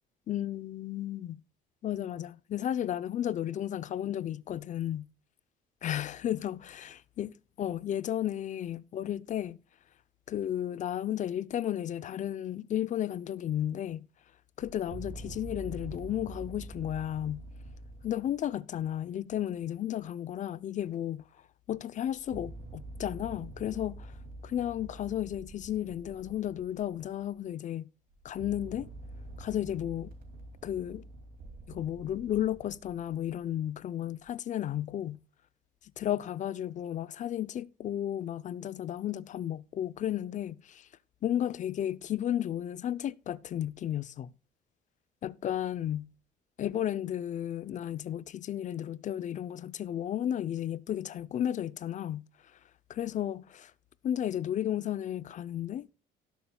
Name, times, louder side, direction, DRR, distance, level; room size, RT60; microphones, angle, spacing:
voice 1, 0.3-1.4 1.8-5.1 5.8-7.3 7.6-9.6 10.3-14.1 14.6-17.4 18.0-21.2 21.7-24.1 24.4-27.9 28.2-28.9 29.4-30.1 30.6-31.0 31.7-35.2 36.0-40.9 41.2-44.3 45.2-46.1 46.6-52.2 52.9-53.7 54.0-55.9, left 11 dB, 45° left, 0.6 m, -33 dB
sound 1, 14.6-18.5 22.0-27.4 28.1-33.5 34.2-34.3, right 2 dB, 60° right, 2.5 m, -46 dB
18.0 x 6.9 x 2.2 m
cardioid pair, 110°, 17 cm